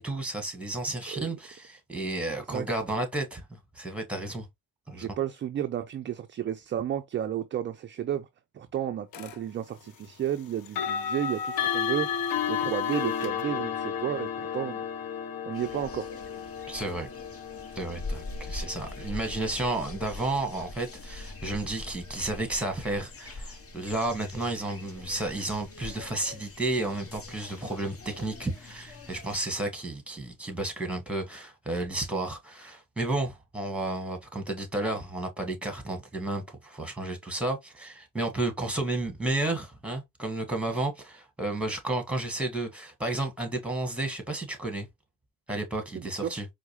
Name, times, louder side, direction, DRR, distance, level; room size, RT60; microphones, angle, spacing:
voice 1, 0.0-4.5 4.9-5.1 16.7-17.1 17.7-44.9 45.5-46.5, right 2 dB, 5° right, 1.4 m, -32 dB
voice 2, 4.9-8.3 8.5-14.8 15.5-16.1 45.9-46.3, right 10 dB, 30° right, 0.4 m, -32 dB
sound 1, 9.1-9.4 10.7-21.5, left 8 dB, 55° left, 0.7 m, -33 dB
sound 2, 15.5-29.4, left 2 dB, 35° left, 1.0 m, -43 dB
4.5 x 2.1 x 2.9 m
supercardioid pair, 70°, 43 cm